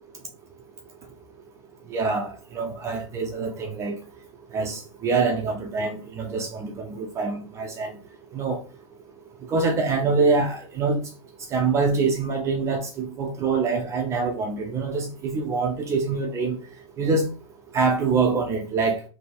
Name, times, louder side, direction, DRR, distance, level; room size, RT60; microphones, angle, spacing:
voice 1, 1.9-4.0 4.5-7.9 8.3-8.6 9.5-11.0 11.5-16.6 17.0-17.3 17.7-19.0, right 4 dB, 20° right, 0.4 m, -25 dB
3.4 x 2.6 x 4.1 m
supercardioid pair, 150°, 16 cm